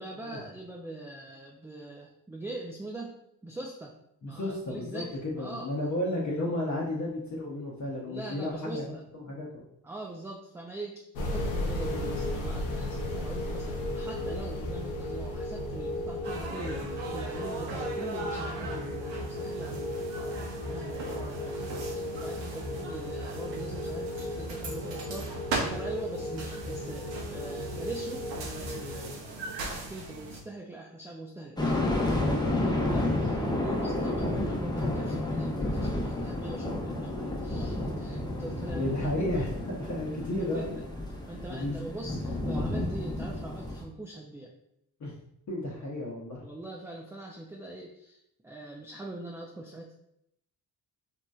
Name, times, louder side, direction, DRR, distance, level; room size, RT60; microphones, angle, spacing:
voice 1, 0.0-3.2 3.4-3.9 4.2-5.7 8.1-9.4 9.8-20.2 20.6-31.7 32.0-39.0 39.7-40.1 40.4-40.7 41.3-44.5 45.9-46.0 46.4-49.9, right 2 dB, 5° right, -1 dB, 0.3 m, -42 dB
voice 2, 4.2-8.8 9.1-9.6 38.7-40.8 41.5-41.8 45.0-45.1 45.5-46.4, left 1 dB, 40° left, -4 dB, 0.8 m, -33 dB
sound 1, 11.1-29.1, left 1 dB, 90° left, 0.6 m, -35 dB
sound 2, 16.2-30.4, right 3 dB, 75° right, 0.7 m, -39 dB
sound 3, 31.6-43.8, left 1 dB, 10° left, 0.7 m, -31 dB
2.9 x 2.6 x 2.3 m, 0.76 s
hypercardioid pair, 40°, 45 cm